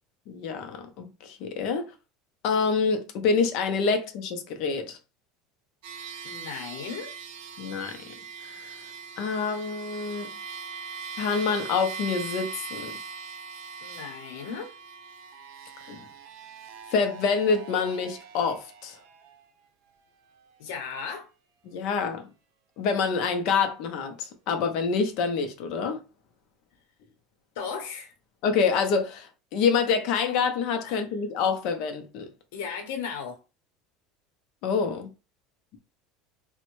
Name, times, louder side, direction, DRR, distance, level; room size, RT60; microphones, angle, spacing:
voice 1, 0.3-1.9 2.4-5.0 7.6-8.1 8.4-8.8 9.2-10.3 11.2-12.9 15.9-16.0 16.9-19.0 21.7-22.3 22.8-26.0 28.4-32.3 34.6-35.1, left 5 dB, 50° left, 0.6 m, -27 dB
sound 1, 5.8-19.5, right 6 dB, 70° right, 0.6 m, -41 dB
voice 2, 6.2-7.1 13.8-14.7 20.6-21.3 27.5-28.1 30.8-31.0 32.5-33.4, left 6 dB, 80° left, 0.8 m, -36 dB
3.5 x 2.1 x 3.0 m
cardioid pair, 165°, 0 cm